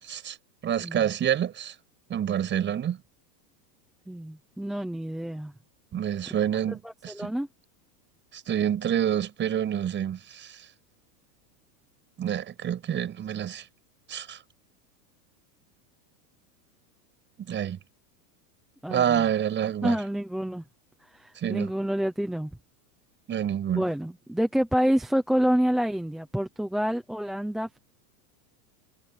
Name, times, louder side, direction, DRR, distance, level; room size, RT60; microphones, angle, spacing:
voice 1, 0.0-0.4 0.6-1.7 2.1-3.0 5.9-7.3 8.3-10.6 12.2-13.7 14.1-14.4 17.4-17.8 18.9-20.0 21.3-21.7 23.3-23.9, right 9 dB, 20° right, 5.7 m, -28 dB
voice 2, 4.1-5.5 6.7-6.8 7.1-7.5 18.8-19.2 19.8-20.6 21.1-22.5 23.7-27.8, equal, ahead, 0.3 m, -27 dB
supercardioid pair, 160°, 49 cm